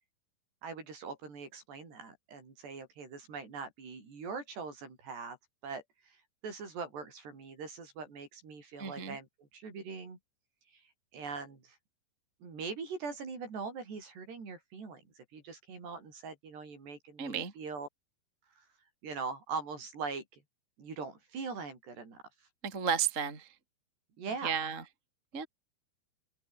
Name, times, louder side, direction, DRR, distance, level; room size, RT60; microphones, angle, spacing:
voice 1, 0.6-5.4 5.6-6.2 6.4-10.2 10.7-10.8 11.1-11.8 12.4-17.9 19.0-20.4 20.8-22.2 24.2-24.6, right 4 dB, 55° right, 8.7 m, -42 dB
voice 2, 8.8-9.2 17.2-17.5 22.6-23.5 24.4-24.8 25.3-25.5, right 7 dB, 20° right, 2.6 m, -33 dB
omnidirectional pair, 5.8 m